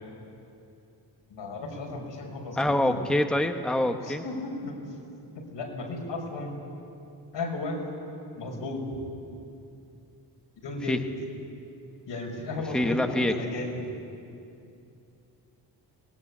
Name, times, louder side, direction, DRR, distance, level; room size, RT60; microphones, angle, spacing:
voice 1, 1.3-3.0 4.1-4.8 5.5-6.5 7.3-7.8 8.4-8.8 10.6-11.0 12.1-13.8, left 2 dB, 90° left, 1 dB, 6.0 m, -34 dB
voice 2, 2.6-4.2 10.9-11.0 12.7-13.3, left 1 dB, ahead, 6 dB, 1.0 m, -25 dB
24.0 x 20.0 x 9.8 m, 2.6 s
wide cardioid pair, 155°, 42 cm